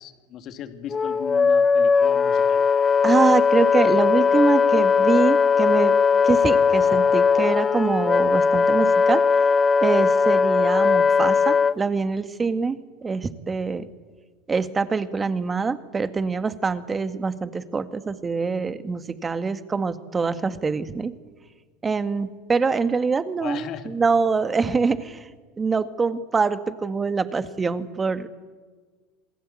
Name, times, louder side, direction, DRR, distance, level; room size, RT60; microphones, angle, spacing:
voice 1, 0.0-2.6 23.4-23.9, left 9 dB, 50° left, 8 dB, 2.7 m, -37 dB
Wind instrument woodwind instrument, 0.9-11.8, left 5 dB, 25° left, 0.7 m, -19 dB
voice 2, 3.0-5.9 6.2-9.2 9.8-13.9 14.5-21.1 21.8-25.3 25.6-28.3, right 4 dB, 25° right, 10 dB, 2.0 m, -24 dB
28.0 x 20.5 x 8.7 m, 1.5 s
hypercardioid pair, 90°, 0 cm